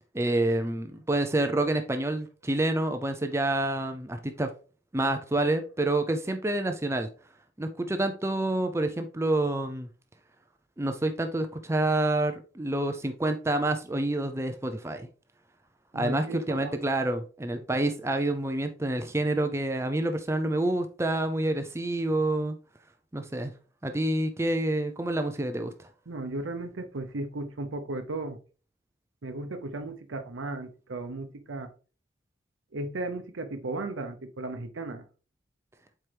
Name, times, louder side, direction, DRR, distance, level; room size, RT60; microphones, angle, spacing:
voice 1, 0.1-4.5 4.9-7.1 7.6-9.9 10.8-15.1 15.9-22.6 23.1-23.5 23.8-25.9, right 1 dB, 15° right, 7 dB, 0.5 m, -28 dB
voice 2, 15.9-16.8 17.6-17.8 26.1-28.4 29.2-31.7 32.7-35.0, right 2 dB, 80° right, 7 dB, 0.7 m, -35 dB
7.7 x 4.6 x 3.4 m, 0.37 s
head